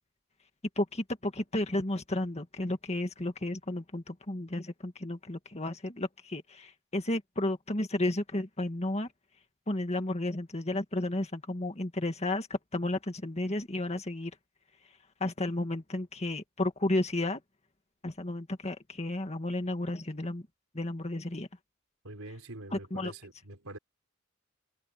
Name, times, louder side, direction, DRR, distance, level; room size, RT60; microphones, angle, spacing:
voice 1, 0.8-9.1 9.7-14.3 15.2-17.4 18.0-20.5 20.7-21.5 22.9-23.1, left 1 dB, 30° left, 2.0 m, -32 dB
voice 2, 22.0-23.8, right 2 dB, 75° right, 3.8 m, -44 dB
head